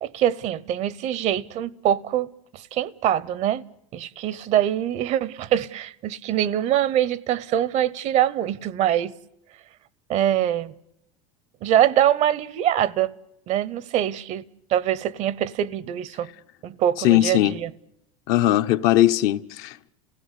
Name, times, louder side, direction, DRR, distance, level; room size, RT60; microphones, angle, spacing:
voice 1, 0.0-3.6 3.9-9.1 10.1-10.7 11.6-13.1 13.5-16.3 16.6-17.7, right 11 dB, 45° right, 0.8 m, -24 dB
voice 2, 17.0-17.6 18.3-19.9, left 14 dB, 65° left, 0.8 m, -19 dB
29.5 x 16.5 x 8.2 m
supercardioid pair, 115°, 16 cm